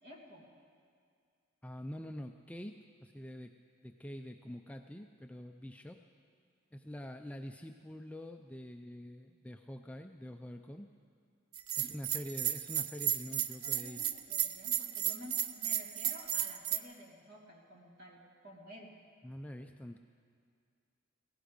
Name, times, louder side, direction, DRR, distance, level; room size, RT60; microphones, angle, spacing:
voice 1, 0.0-0.5 11.7-11.9 13.3-13.4 13.6-18.9, left 1 dB, 45° right, -1 dB, 2.5 m, -52 dB
voice 2, 1.6-3.5 3.8-6.0 6.7-10.9 11.8-14.1 19.2-20.0, equal, 5° left, 5 dB, 0.4 m, -46 dB
Bell, 11.5-16.8, right 10 dB, 75° right, 0.6 m, -34 dB
17.0 x 16.5 x 5.2 m, 2.3 s
head